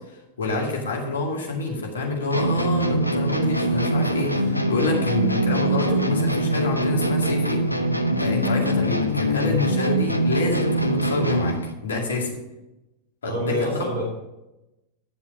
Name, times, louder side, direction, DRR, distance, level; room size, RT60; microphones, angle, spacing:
voice 1, 0.4-7.6 8.2-11.6 11.8-12.4 13.2-13.9, left 2 dB, 65° left, 0 dB, 2.3 m, -27 dB
sound 1, 2.3-11.7, right 1 dB, 90° left, 0.7 m, -23 dB
voice 2, 13.2-14.0, equal, 60° right, -3 dB, 3.0 m, -28 dB
10.0 x 7.1 x 5.0 m, 0.97 s
figure-of-eight pair, 90°, 0 cm